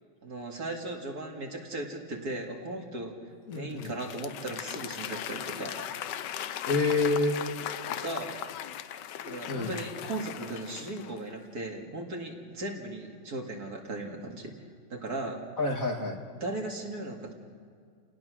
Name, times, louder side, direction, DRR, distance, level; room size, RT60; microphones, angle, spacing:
voice 1, 0.2-5.9 7.9-8.4 9.2-14.5 14.9-15.4 16.4-17.3, right 2 dB, 50° right, 1 dB, 2.5 m, -37 dB
Applause / Crowd, 3.5-11.3, left 10 dB, 65° left, 1.2 m, -38 dB
voice 2, 3.5-3.9 6.7-7.4 9.5-9.7 15.6-16.2, left 3 dB, 45° left, 2 dB, 2.0 m, -27 dB
29.5 x 18.5 x 6.2 m, 2.1 s
omnidirectional pair, 2.2 m